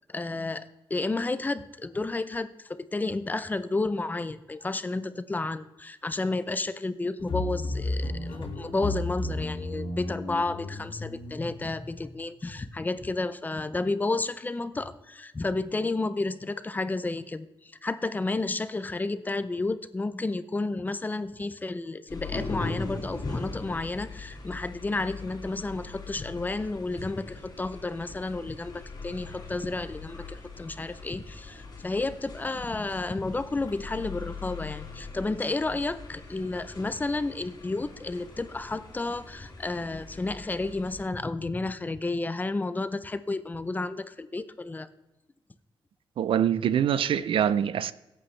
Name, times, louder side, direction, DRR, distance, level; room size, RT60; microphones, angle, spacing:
voice 1, 0.1-44.9, left 3 dB, 20° left, 0.5 m, -31 dB
sound 1, 7.2-12.2, left 2 dB, 75° left, 2.2 m, -33 dB
sound 2, 22.1-41.1, left 3 dB, 45° left, 2.5 m, -41 dB
voice 2, 46.2-47.9, right 9 dB, 75° right, 0.5 m, -24 dB
17.0 x 8.5 x 3.2 m
wide cardioid pair, 150°, 9 cm